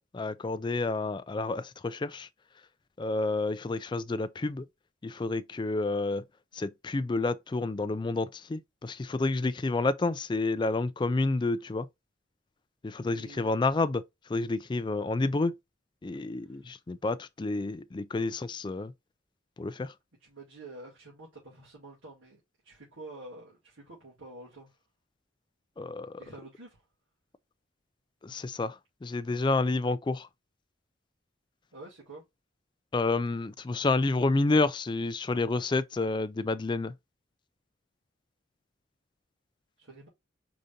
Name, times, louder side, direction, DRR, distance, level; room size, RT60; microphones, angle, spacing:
voice 1, 0.0-2.3 3.0-4.6 5.0-6.2 6.5-11.9 12.8-14.0 14.3-15.6 16.0-18.9 19.6-19.9 25.8-26.2 28.2-28.8 29.0-30.3 32.9-36.9, left 3 dB, 25° left, 0.3 m, -29 dB
voice 2, 13.0-13.6 16.1-16.6 20.2-24.7 26.2-26.8 31.7-32.2 39.8-40.1, right 2 dB, 90° right, 2.5 m, -48 dB
5.0 x 3.9 x 2.6 m
head